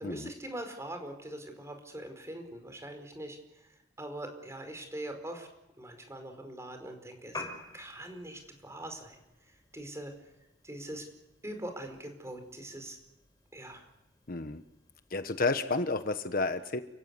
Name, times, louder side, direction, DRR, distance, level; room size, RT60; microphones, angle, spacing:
voice 1, 0.0-3.4 4.0-5.5 5.8-7.4 7.7-10.1 10.6-11.0 11.4-13.0 13.5-13.8, right 1 dB, 15° right, 5 dB, 4.8 m, -42 dB
Piano, 7.2-15.3, left 3 dB, 25° left, 5.4 m, -50 dB
voice 2, 14.3-14.6 15.1-16.8, left 3 dB, 50° left, 9 dB, 1.3 m, -31 dB
29.5 x 16.0 x 9.7 m, 0.95 s
head